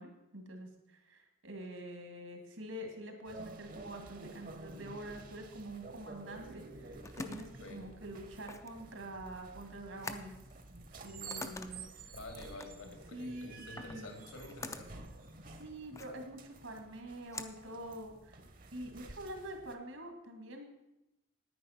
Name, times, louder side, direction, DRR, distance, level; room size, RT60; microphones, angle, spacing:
voice 1, 0.0-10.4 11.0-11.8 13.1-14.1 15.5-18.4 18.7-20.7, right 1 dB, 75° right, 4 dB, 2.2 m, -46 dB
sound 1, 3.3-19.7, right 3 dB, 40° right, 0.9 m, -51 dB
sound 2, 6.7-18.5, left 3 dB, 15° left, 0.4 m, -48 dB
voice 2, 12.1-15.1, left 2 dB, 80° left, 4 dB, 2.3 m, -49 dB
9.6 x 9.4 x 5.8 m, 0.90 s
head